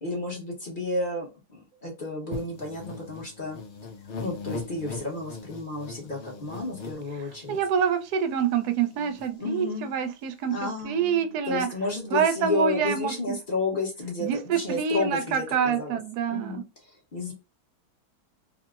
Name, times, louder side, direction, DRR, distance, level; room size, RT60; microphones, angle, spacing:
voice 1, 0.0-3.6 4.2-7.6 9.4-9.9 10.5-16.0 16.3-16.6 16.9-17.3, left 2 dB, 35° left, 1.1 m, -32 dB
sound 1, 2.3-7.9 8.4-8.5 8.7-9.3, left 4 dB, 60° left, 0.8 m, -40 dB
voice 2, 7.5-11.7 12.1-13.4 14.2-16.6, right 7 dB, 75° right, 1.2 m, -26 dB
3.6 x 2.8 x 2.4 m
omnidirectional pair, 1.7 m